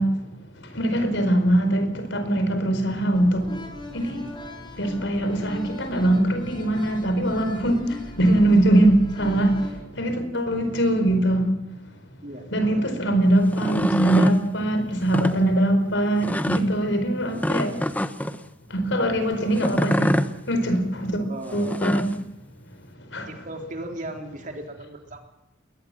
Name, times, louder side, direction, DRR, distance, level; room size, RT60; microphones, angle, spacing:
voice 1, 0.0-3.7 3.9-4.3 4.7-11.5 12.5-17.9 18.7-21.2 21.5-22.1 23.0-23.4, right 1 dB, 65° left, 4.6 m, -22 dB
sound 1, 3.1-9.8, left 1 dB, 25° left, 4.7 m, -39 dB
voice 2, 12.2-12.9 21.2-21.8 23.3-25.2, right 1 dB, 40° right, 3.8 m, -37 dB
sound 2, 13.4-14.4 15.0-15.3 16.2-16.6 17.4-18.4 19.6-20.3 21.5-22.2, left 1 dB, 10° left, 1.0 m, -25 dB
21.5 x 20.0 x 7.7 m
head